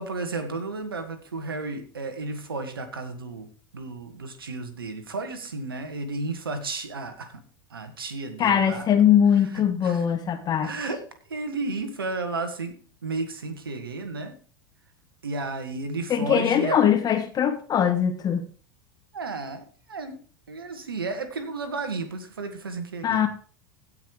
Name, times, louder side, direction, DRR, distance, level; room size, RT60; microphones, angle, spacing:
voice 1, 0.0-7.4 7.7-8.9 9.5-10.1 10.6-14.3 15.2-16.8 19.1-20.2 20.5-23.3, right 3 dB, 85° right, 8 dB, 2.0 m, -33 dB
voice 2, 8.4-10.7 16.1-18.4 23.0-23.3, left 9 dB, 35° left, 7 dB, 1.6 m, -21 dB
16.5 x 5.9 x 4.9 m, 0.42 s
hypercardioid pair, 85°, 12 cm